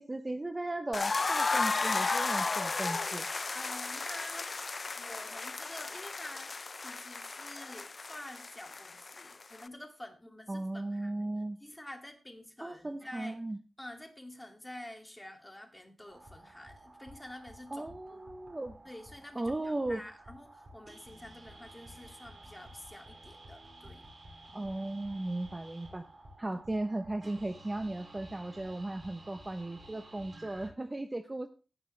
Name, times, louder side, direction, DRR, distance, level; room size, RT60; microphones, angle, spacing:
voice 1, 0.0-3.3 10.5-11.6 12.6-13.6 17.7-18.8 19.3-20.0 24.5-26.0 26.4-31.5, right 2 dB, 20° right, 8 dB, 0.8 m, -36 dB
sound 1, 0.9-9.7, left 3 dB, 40° left, 0.6 m, -34 dB
voice 2, 3.5-4.5 5.0-11.1 11.6-13.4 13.8-18.2 18.8-24.1, left 1 dB, 10° left, 4 dB, 2.4 m, -48 dB
sound 2, 16.1-30.7, right 1 dB, 40° right, 5.9 m, -53 dB
16.0 x 10.5 x 3.3 m, 0.33 s
wide cardioid pair, 135°, 0 cm